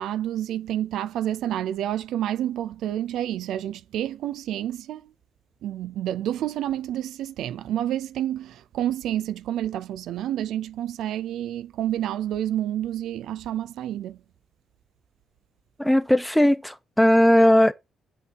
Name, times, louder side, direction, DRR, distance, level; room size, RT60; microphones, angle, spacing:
voice 1, 0.0-5.1 5.6-14.2, right 11 dB, 80° right, 0.4 m, -29 dB
voice 2, 15.8-17.7, left 1 dB, 5° left, 1.1 m, -18 dB
8.2 x 5.3 x 4.1 m
supercardioid pair, 65°, 0 cm